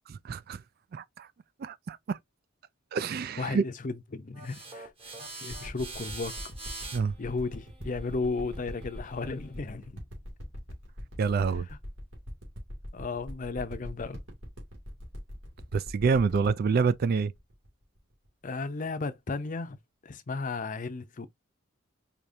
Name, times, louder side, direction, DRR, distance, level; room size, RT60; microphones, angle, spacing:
voice 1, 0.2-0.6 0.9-1.3 1.6-2.2 2.9-3.6 6.9-7.1 11.2-11.7 15.7-17.3, right 5 dB, 50° right, 0.3 m, -27 dB
voice 2, 3.4-4.9 5.3-6.3 7.2-10.0 12.9-14.2 18.4-19.8 20.0-21.3, left 3 dB, 40° left, 0.6 m, -34 dB
sound 1, 4.3-9.5, right 3 dB, 30° right, 1.3 m, -45 dB
sound 2, 5.5-18.3 18.8-18.9, equal, 80° right, 2.3 m, -42 dB
4.9 x 2.9 x 2.7 m
head